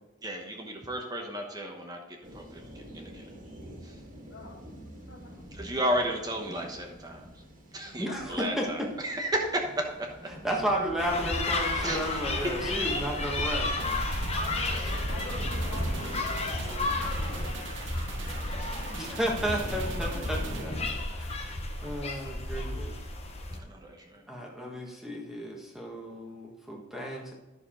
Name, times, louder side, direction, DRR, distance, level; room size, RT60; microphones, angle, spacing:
voice 1, 0.2-3.3 3.8-4.0 5.5-7.3 7.7-10.1 11.8-12.4 14.7-14.8 23.5-24.2, right 1 dB, 20° right, 2 dB, 1.0 m, -34 dB
sound 1, 2.2-20.8, equal, 40° right, 1.9 m, -44 dB
voice 2, 4.3-4.7 5.1-5.5 7.8-8.4 14.3-18.4 19.9-21.3 24.1-24.5, left 2 dB, 65° left, -1 dB, 2.3 m, -47 dB
voice 3, 8.0-8.9 10.4-14.0 18.9-20.7 21.2-21.4 21.8-22.9 24.3-27.3, equal, ahead, -1 dB, 1.4 m, -33 dB
sound 2, 11.0-23.6, left 2 dB, 30° left, 1.1 m, -32 dB
sound 3, 13.8-22.4 22.7-22.8, right 4 dB, 60° right, 0.8 m, -42 dB
11.0 x 6.7 x 3.8 m, 1.1 s
head